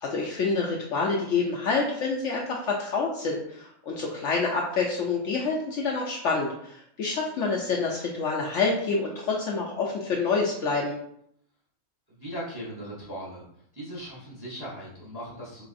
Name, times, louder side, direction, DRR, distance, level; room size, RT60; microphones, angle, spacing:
voice 1, 0.0-11.0, left 4 dB, 65° left, -2 dB, 0.8 m, -27 dB
voice 2, 12.1-13.4 13.7-15.7, equal, 20° right, -6 dB, 0.6 m, -38 dB
3.9 x 2.8 x 2.5 m, 0.70 s
omnidirectional pair, 1.6 m